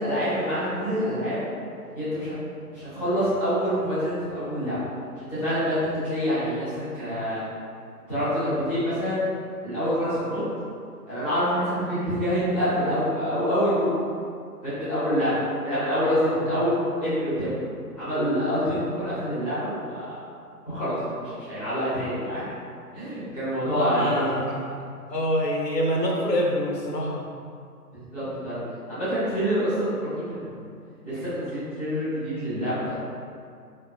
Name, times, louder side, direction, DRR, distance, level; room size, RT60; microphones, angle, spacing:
voice 1, 0.0-1.4 1.9-2.3 2.7-4.8 5.2-7.4 8.1-9.2 9.6-10.4 11.1-13.9 14.6-16.7 17.0-17.5 18.0-20.2 20.6-22.4 22.9-24.2 27.9-28.6 28.9-30.6 31.0-33.0, equal, 5° right, -20 dB, 0.9 m, -26 dB
voice 2, 23.6-24.8 25.1-27.2, equal, 80° left, -2 dB, 1.0 m, -26 dB
4.4 x 3.3 x 2.4 m, 2.3 s
figure-of-eight pair, 140°, 48 cm